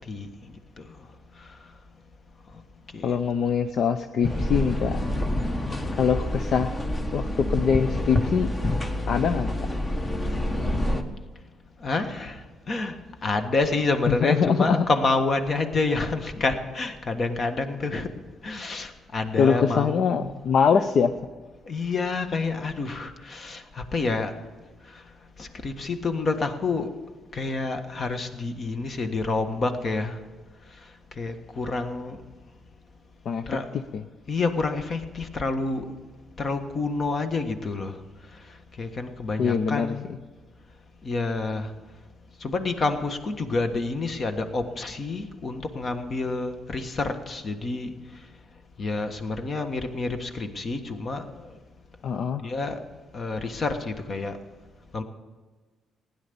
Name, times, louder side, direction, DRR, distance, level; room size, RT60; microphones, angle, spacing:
voice 1, 3.0-5.0 6.0-6.7 7.1-8.5 9.1-9.5 14.1-14.8 19.4-21.1 33.3-33.4 33.9-34.0 39.4-39.9 52.0-52.5, left 6 dB, 60° left, 8 dB, 0.6 m, -23 dB
sound 1, 4.2-11.0, left 1 dB, 25° left, 1.3 m, -27 dB
voice 2, 11.8-12.4 12.7-12.9 13.2-18.1 18.4-20.4 21.7-24.3 25.4-26.9 27.3-30.2 31.2-32.2 33.5-33.7 34.3-35.8 36.4-37.9 38.8-40.1 41.0-41.7 42.4-47.9 48.8-51.3 52.4-52.8 53.1-54.3 54.9-55.0, left 3 dB, 45° left, 7 dB, 1.4 m, -28 dB
16.0 x 10.0 x 6.9 m, 1.3 s
cardioid pair, 90°, 0 cm